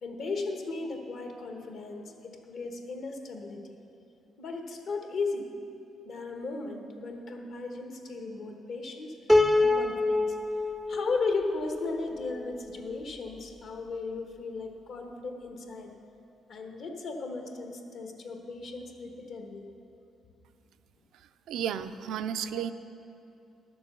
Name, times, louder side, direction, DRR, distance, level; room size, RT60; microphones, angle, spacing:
voice 1, 0.0-3.7 4.4-5.5 6.0-9.1 9.5-10.4 10.9-15.9 16.5-19.7 22.5-22.6, left 3 dB, 65° left, 3 dB, 1.2 m, -36 dB
Piano, 9.3-12.5, left 2 dB, 5° left, 0.4 m, -26 dB
voice 2, 21.5-22.7, right 9 dB, 80° right, 10 dB, 0.4 m, -32 dB
11.0 x 7.0 x 6.8 m, 2.8 s
cardioid pair, 90°, 0 cm